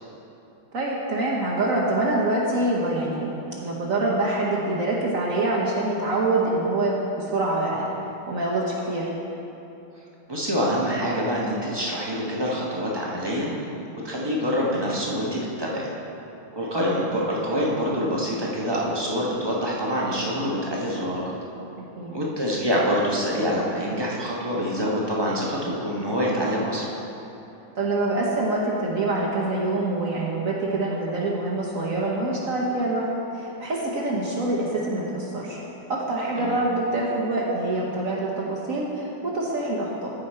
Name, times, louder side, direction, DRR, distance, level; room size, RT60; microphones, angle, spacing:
voice 1, 0.7-3.3 3.6-7.9 8.3-9.1 21.8-22.2 27.8-33.0 33.3-35.6 35.9-40.1, right 2 dB, 50° right, -4 dB, 1.1 m, -25 dB
voice 2, 10.3-13.5 14.0-15.9 16.5-21.3 22.1-26.9 36.3-36.6, equal, 20° right, -4 dB, 0.7 m, -26 dB
14.0 x 5.1 x 4.3 m, 2.9 s
omnidirectional pair, 2.2 m